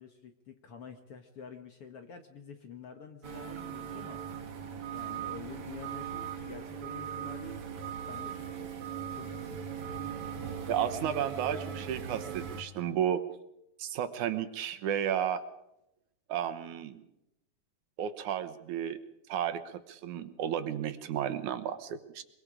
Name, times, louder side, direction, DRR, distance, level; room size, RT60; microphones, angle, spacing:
voice 1, 0.0-4.2 4.8-7.7 8.1-8.8 9.1-9.6, left 6 dB, 55° left, 6 dB, 1.9 m, -48 dB
sound 1, 3.2-12.6, right 7 dB, 50° right, 2.5 m, -39 dB
voice 2, 10.7-13.2 13.8-15.4 16.3-17.1 18.0-19.0 19.3-22.2, right 9 dB, 75° right, 11 dB, 2.6 m, -33 dB
24.0 x 23.0 x 5.0 m, 0.86 s
omnidirectional pair, 3.6 m